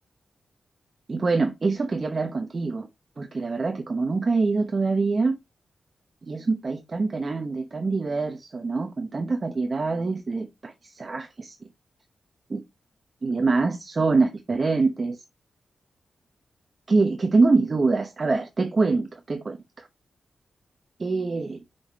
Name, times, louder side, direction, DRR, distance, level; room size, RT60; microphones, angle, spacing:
voice 1, 1.1-2.9 3.2-5.4 6.2-11.6 12.5-12.6 13.2-15.2 16.9-19.9 21.0-21.6, right 3 dB, 35° right, 0.9 m, -25 dB
5.7 x 5.2 x 4.1 m
wide cardioid pair, 160°, 0 cm